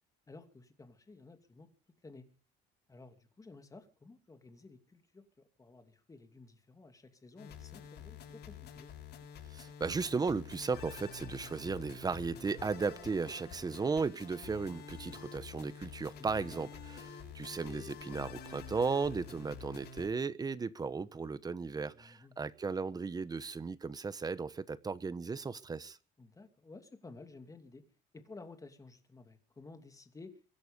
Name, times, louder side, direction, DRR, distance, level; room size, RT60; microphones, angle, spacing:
voice 1, 0.3-1.7 2.0-2.3 2.9-5.2 5.6-8.9 16.2-16.7 21.9-22.3 26.2-27.8 28.1-30.4, left 3 dB, 15° left, 2.7 m, -54 dB
sound 1, 7.4-20.1, left 6 dB, 60° left, 7.1 m, -48 dB
voice 2, 9.5-26.0, right 4 dB, 20° right, 1.1 m, -36 dB
24.0 x 11.0 x 5.3 m
cardioid pair, 130°, 19 cm